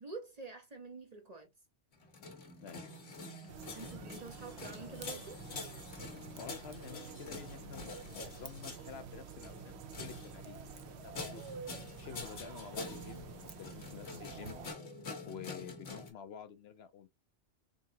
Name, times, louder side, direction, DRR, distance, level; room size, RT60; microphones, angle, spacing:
voice 1, 0.0-1.5 3.7-5.4, right 4 dB, 40° right, 0.8 m, -47 dB
sound 1, 1.9-16.1, left 3 dB, 85° left, 1.6 m, -47 dB
sound 2, 3.5-14.7, right 7 dB, 65° right, 0.9 m, -49 dB
voice 2, 6.4-11.4 12.0-14.6 15.3-17.1, left 7 dB, 65° left, 0.8 m, -49 dB
3.8 x 3.7 x 2.8 m
omnidirectional pair, 1.2 m